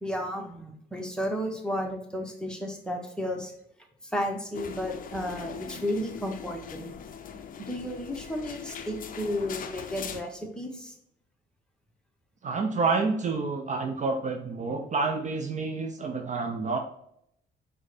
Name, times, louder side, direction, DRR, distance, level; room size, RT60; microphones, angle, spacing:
voice 1, 0.0-3.5 4.0-6.9 7.6-10.9, equal, 5° left, 2 dB, 1.0 m, -33 dB
sound 1, 4.5-10.2, left 7 dB, 45° left, 0.5 m, -41 dB
voice 2, 12.4-16.8, right 4 dB, 40° right, 4 dB, 0.5 m, -28 dB
4.6 x 2.2 x 4.0 m, 0.72 s
supercardioid pair, 60°, 19 cm